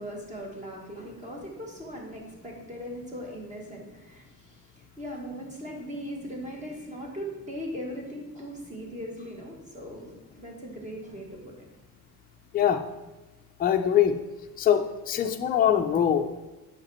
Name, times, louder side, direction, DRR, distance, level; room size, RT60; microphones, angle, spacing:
voice 1, 0.0-4.5 5.0-11.7, equal, 20° right, -1 dB, 1.7 m, -39 dB
voice 2, 13.6-14.2 14.6-16.3, left 9 dB, 25° left, 4 dB, 0.5 m, -23 dB
7.9 x 5.9 x 4.3 m, 1.1 s
cardioid pair, 160°, 37 cm